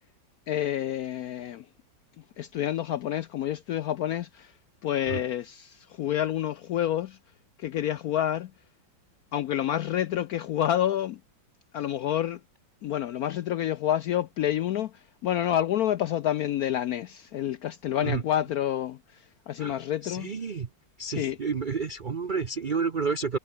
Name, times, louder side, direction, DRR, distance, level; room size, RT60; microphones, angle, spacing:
voice 1, 0.5-1.6 2.4-4.5 4.8-7.2 7.6-8.5 9.3-11.2 11.7-12.4 12.8-14.9 15.2-19.0 19.5-20.3 21.1-21.4, left 11 dB, 75° left, 0.8 m, -28 dB
voice 2, 19.6-20.7 21.0-23.4, right 5 dB, 65° right, 0.4 m, -30 dB
omnidirectional pair, 2.1 m